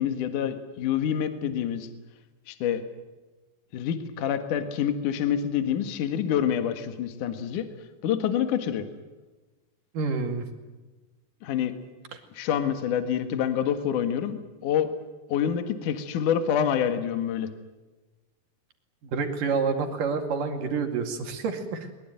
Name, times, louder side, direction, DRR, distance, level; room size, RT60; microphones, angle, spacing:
voice 1, 0.0-1.9 2.5-2.8 3.7-7.7 8.0-8.9 11.4-11.7 12.3-14.9 15.3-17.5, left 9 dB, 55° left, 9 dB, 2.7 m, -27 dB
voice 2, 9.9-10.5 19.1-21.9, right 5 dB, 55° right, 5 dB, 3.5 m, -28 dB
22.0 x 21.5 x 9.1 m, 1.2 s
omnidirectional pair, 5.0 m